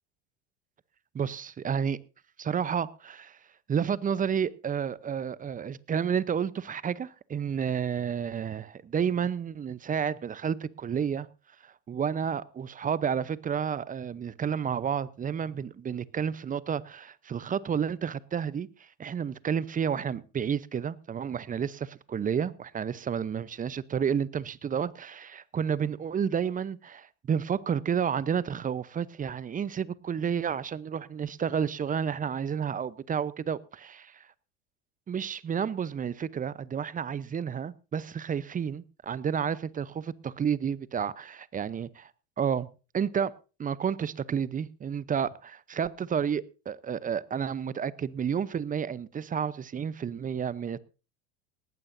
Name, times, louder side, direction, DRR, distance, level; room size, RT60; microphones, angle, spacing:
voice 1, 1.1-2.0 2.4-3.4 3.7-11.3 11.6-18.7 19.0-34.3 35.1-42.1 42.4-42.7 42.9-43.3 43.6-50.8, right 7 dB, 25° right, 0.8 m, -31 dB
18.5 x 15.5 x 2.7 m
hypercardioid pair, 85°, 35 cm